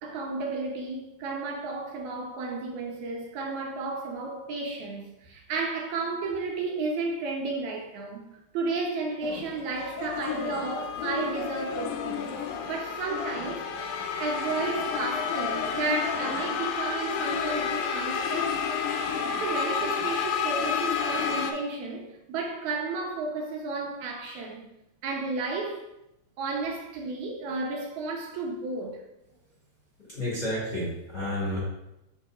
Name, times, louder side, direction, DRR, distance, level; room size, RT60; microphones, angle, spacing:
voice 1, 0.0-8.3 8.5-12.3 12.7-13.7 14.2-18.6 19.4-24.7 25.0-25.8 26.4-29.0, right 3 dB, 75° right, 2.1 m, -32 dB
sound 1, 9.2-21.5, left 6 dB, 80° left, 1.9 m, -30 dB
voice 2, 30.1-31.6, left 1 dB, 30° left, 1.5 m, -31 dB
6.7 x 5.7 x 2.4 m
omnidirectional pair, 3.5 m